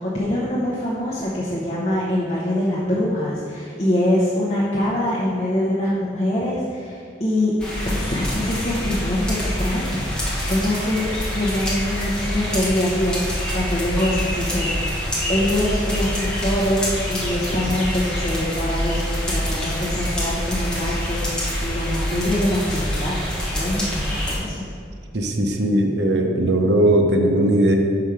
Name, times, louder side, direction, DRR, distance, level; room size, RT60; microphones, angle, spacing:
voice 1, 0.0-7.5 7.8-11.0 11.3-24.7, left 1 dB, 35° left, -6 dB, 0.9 m, -24 dB
sound 1, 7.6-24.3, equal, 5° left, 1.1 m, -26 dB
voice 2, 25.1-27.7, right 1 dB, 65° right, 3 dB, 0.6 m, -18 dB
5.8 x 5.3 x 4.9 m, 2.4 s
head